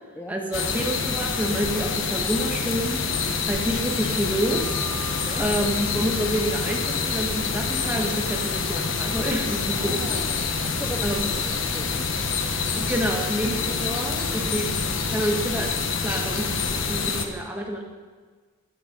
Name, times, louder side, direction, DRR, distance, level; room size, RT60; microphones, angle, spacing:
voice 1, 0.3-3.0 3.4-4.6 5.4-10.2 11.0-11.3 12.8-14.7 15.1-16.5 16.9-17.8, equal, 10° right, -1 dB, 1.6 m, -28 dB
sound 1, 0.5-17.3, left 4 dB, 70° left, 1.2 m, -27 dB
Wind instrument woodwind instrument, 4.3-9.3, right 3 dB, 90° left, 3.5 m, -45 dB
voice 2, 5.0-5.5 9.5-12.1 14.8-14.9, equal, 10° left, 3 dB, 0.6 m, -39 dB
15.0 x 9.4 x 5.5 m, 1.5 s
head